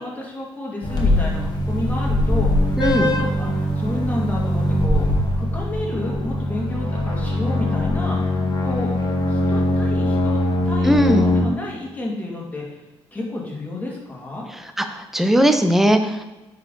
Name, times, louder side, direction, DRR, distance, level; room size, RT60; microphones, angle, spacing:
voice 1, 0.0-5.1 5.4-8.9 9.3-12.8 13.1-14.5, left 2 dB, 15° left, -3 dB, 2.2 m, -31 dB
sound 1, 0.8-11.4, left 1 dB, 40° left, 1.7 m, -21 dB
voice 2, 2.8-3.1 10.8-11.3 14.5-16.2, equal, 5° right, 6 dB, 0.7 m, -19 dB
9.2 x 4.9 x 3.9 m, 1.0 s
cardioid pair, 115°, 11 cm